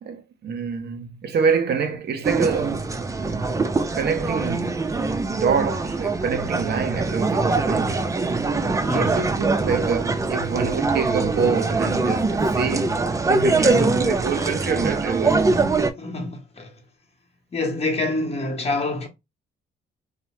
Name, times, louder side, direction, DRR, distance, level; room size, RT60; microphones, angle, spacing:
voice 1, 0.0-2.9 3.1-4.8 5.3-8.1 8.9-15.4, right 6 dB, 55° right, 0.7 m, -26 dB
sound 1, 2.2-15.9, right 3 dB, 15° right, 0.4 m, -23 dB
voice 2, 8.9-9.2 13.6-14.0 16.0-16.7 17.5-19.1, left 2 dB, 30° left, 1.0 m, -26 dB
2.8 x 2.0 x 3.2 m
cardioid pair, 90°, 20 cm